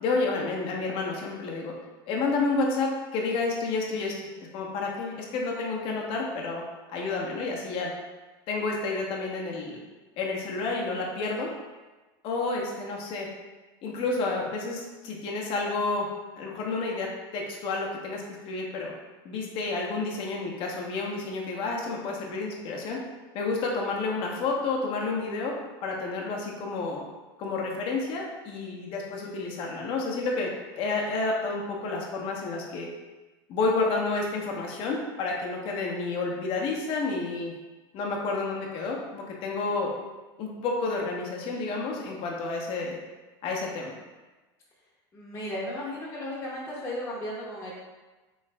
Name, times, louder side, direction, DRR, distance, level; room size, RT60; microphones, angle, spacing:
voice 1, 0.0-1.7 2.1-4.1 4.5-6.6 6.9-7.9 8.5-9.8 10.2-11.5 12.2-13.3 13.8-16.1 16.4-18.9 19.2-23.0 23.3-25.5 25.8-27.0 27.4-30.5 30.7-32.9 33.5-37.5 37.9-39.9 40.4-43.0 43.4-43.9, left 3 dB, 50° left, -1 dB, 0.8 m, -30 dB
voice 2, 45.1-47.7, left 1 dB, 20° left, -6 dB, 0.9 m, -35 dB
3.6 x 3.2 x 3.3 m, 1.2 s
supercardioid pair, 130°, 12 cm